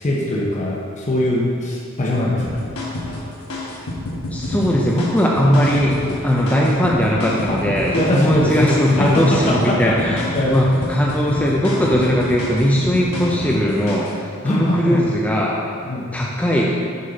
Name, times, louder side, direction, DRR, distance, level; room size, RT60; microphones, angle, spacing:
voice 1, 0.0-2.6 7.9-8.6 8.9-9.1 9.5-9.9 10.3-10.5 14.4-15.0 15.9-16.1, left 1 dB, 35° left, -4 dB, 0.8 m, -21 dB
sound 1, 2.4-14.2, left 2 dB, 75° left, 1.2 m, -28 dB
voice 2, 4.3-15.6 16.1-16.6, equal, 5° left, -4 dB, 0.5 m, -19 dB
6.5 x 5.4 x 4.0 m, 2.3 s
head